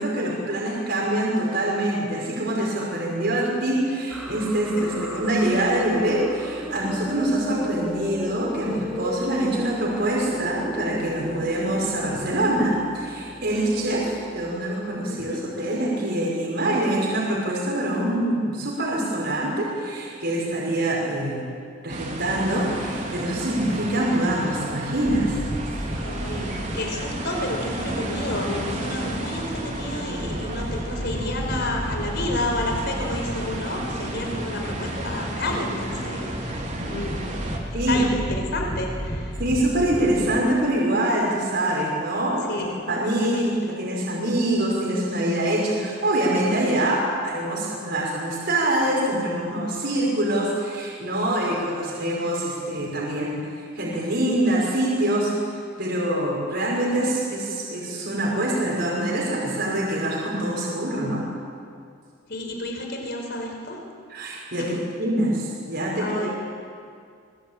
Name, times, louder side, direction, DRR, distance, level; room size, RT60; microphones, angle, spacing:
voice 1, 0.0-21.4 21.8-25.4 37.7-38.0 39.4-42.5 42.9-43.5 43.8-55.3 55.8-61.2 64.1-66.3, right 1 dB, 55° right, -3 dB, 5.3 m, -24 dB
sound 1, 4.1-14.3, equal, ahead, 4.1 m, -36 dB
voice 2, 15.1-15.4 25.9-39.4 42.5-42.7 43.2-43.4 62.3-63.8 64.6-64.7 66.0-66.3, left 1 dB, 60° left, 2 dB, 5.0 m, -31 dB
sound 2, 21.9-37.6, right 1 dB, 40° right, 3.6 m, -33 dB
sound 3, 25.0-40.4, equal, 20° left, 2.2 m, -33 dB
24.0 x 21.5 x 8.9 m, 2.2 s
head